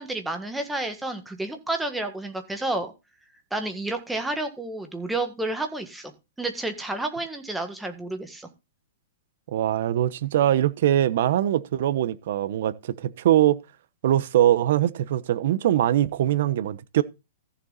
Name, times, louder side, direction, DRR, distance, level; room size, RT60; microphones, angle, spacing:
voice 1, 0.0-2.9 3.5-6.1 6.4-8.5, right 2 dB, 5° right, 1.7 m, -30 dB
voice 2, 9.5-13.6 14.0-17.0, right 12 dB, 60° right, 1.1 m, -22 dB
14.5 x 7.0 x 4.1 m
hypercardioid pair, 160°, 0 cm